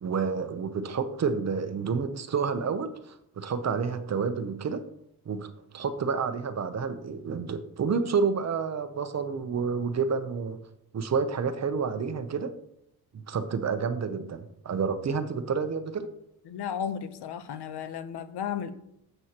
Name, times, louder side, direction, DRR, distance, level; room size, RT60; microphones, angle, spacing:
voice 1, 0.0-4.8 5.3-10.6 10.9-12.5 13.1-16.1, right 5 dB, 45° right, 10 dB, 0.8 m, -29 dB
voice 2, 16.5-18.7, left 8 dB, 90° left, 12 dB, 0.8 m, -34 dB
12.5 x 8.0 x 2.9 m, 0.76 s
wide cardioid pair, 140°, 39 cm